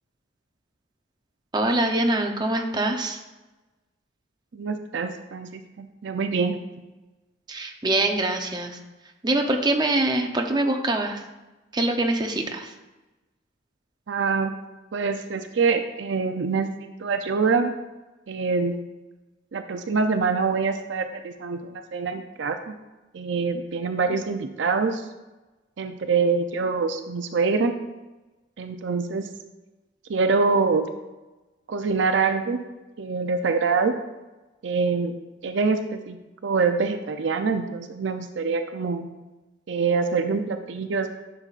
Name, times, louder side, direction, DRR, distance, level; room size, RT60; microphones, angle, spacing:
voice 1, 1.5-3.2 7.5-8.8 9.2-11.2 11.7-12.7, right 2 dB, 20° right, 3 dB, 0.7 m, -24 dB
voice 2, 4.5-6.6 14.1-14.5 14.9-17.7 18.3-18.8 19.5-22.7 23.1-25.1 25.8-27.8 28.6-29.3 30.1-30.9 31.7-32.6 33.0-34.0 34.6-35.1 35.4-36.2 36.4-39.1 39.7-41.1, right 4 dB, 65° right, 8 dB, 0.5 m, -25 dB
10.5 x 6.8 x 2.5 m, 1.1 s
head